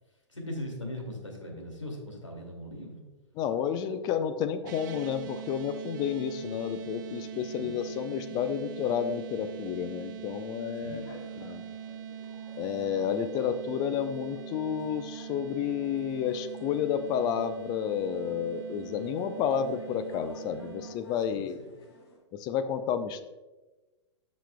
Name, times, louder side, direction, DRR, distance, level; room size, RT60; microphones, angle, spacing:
voice 1, 0.3-3.1 7.5-7.8 10.8-11.2 21.3-21.7, left 1 dB, 85° left, 0 dB, 2.3 m, -40 dB
voice 2, 3.4-11.1 11.4-11.6 12.6-21.6 22.3-23.2, left 8 dB, 25° left, 9 dB, 0.6 m, -31 dB
sound 1, 4.6-21.0, right 9 dB, 40° right, 0.6 m, -42 dB
sound 2, 10.9-22.2, left 2 dB, 55° left, 2.7 m, -54 dB
13.5 x 6.2 x 2.2 m, 1.1 s
figure-of-eight pair, 110°, 15 cm